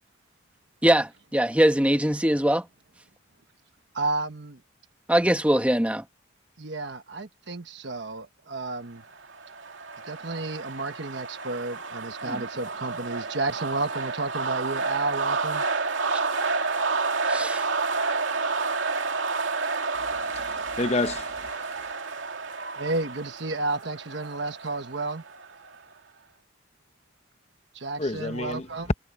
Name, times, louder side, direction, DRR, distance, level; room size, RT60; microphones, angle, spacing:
voice 1, 0.8-2.6 5.1-6.0 12.3-12.4 16.1-16.2 17.3-17.6, right 1 dB, 5° right, 1.2 m, -22 dB
voice 2, 3.9-4.6 6.6-9.0 10.0-15.6 22.8-25.2 27.7-28.9, right 3 dB, 65° right, 1.2 m, -31 dB
sound 1, 9.1-25.8, right 4 dB, 85° right, 2.5 m, -30 dB
voice 3, 19.9-21.5 28.0-28.7, left 2 dB, 35° left, 0.9 m, -30 dB
head